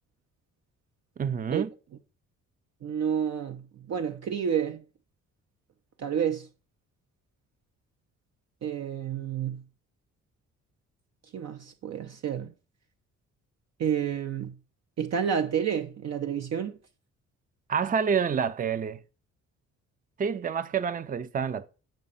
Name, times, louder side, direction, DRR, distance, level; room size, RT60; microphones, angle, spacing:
voice 1, 1.2-1.7 17.7-19.0 20.2-21.7, right 6 dB, 30° right, 0.6 m, -28 dB
voice 2, 2.8-3.6 3.9-4.8 6.0-6.5 8.6-9.6 11.3-12.5 13.8-14.5 15.0-16.7, right 8 dB, 60° right, 0.9 m, -29 dB
9.0 x 5.1 x 5.6 m
cardioid pair, 90°, 30 cm